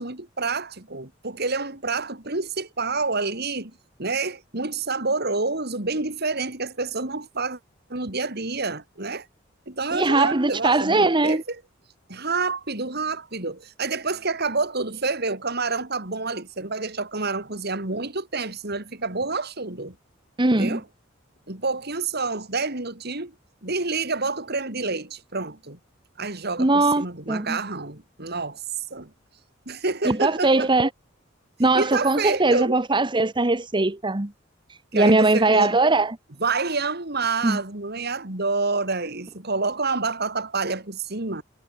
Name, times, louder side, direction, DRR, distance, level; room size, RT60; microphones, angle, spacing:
voice 1, 0.0-3.7 4.0-7.6 7.9-9.3 9.7-11.6 12.1-20.0 20.5-20.8 21.5-23.3 23.6-25.8 26.2-28.6 28.9-29.1 29.7-30.7 31.7-32.8 34.9-35.7 36.4-41.4, right 3 dB, 55° right, 4.0 m, -28 dB
voice 2, 9.9-11.4 20.4-20.8 26.6-27.6 30.0-30.9 31.6-34.3 34.9-36.2 37.4-37.6, right 2 dB, 25° right, 1.3 m, -20 dB
head